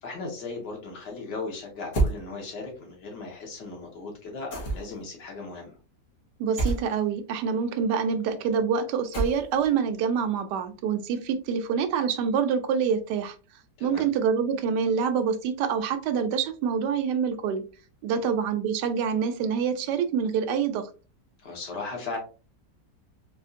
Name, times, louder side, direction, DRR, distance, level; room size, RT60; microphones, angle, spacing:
voice 1, 0.0-5.8 13.8-14.0 18.1-18.2 21.4-22.2, left 3 dB, 85° left, 1 dB, 1.8 m, -37 dB
sound 1, 1.9-2.2 4.5-5.0 6.6-6.8 9.1-9.7, right 3 dB, 55° left, 1.5 m, -26 dB
voice 2, 6.4-13.3 13.8-17.6 18.0-20.9, right 6 dB, 85° right, 8 dB, 1.2 m, -26 dB
4.3 x 2.4 x 2.5 m, 0.35 s
omnidirectional pair, 1.8 m